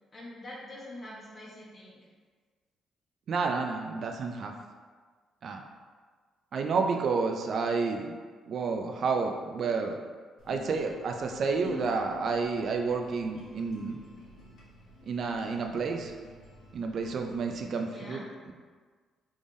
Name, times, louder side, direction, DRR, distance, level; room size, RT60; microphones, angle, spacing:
voice 1, 0.1-2.0 17.9-18.2, left 1 dB, 35° left, -6 dB, 1.2 m, -45 dB
voice 2, 3.3-4.5 5.4-5.6 6.5-8.1 8.5-10.0 10.5-14.0 15.1-16.1 16.7-18.2, right 4 dB, 60° right, 3 dB, 0.3 m, -30 dB
sound 1, 10.4-17.6, left 5 dB, 75° left, 0.9 m, -49 dB
3.4 x 3.4 x 2.6 m, 1.5 s
cardioid pair, 90°, 0 cm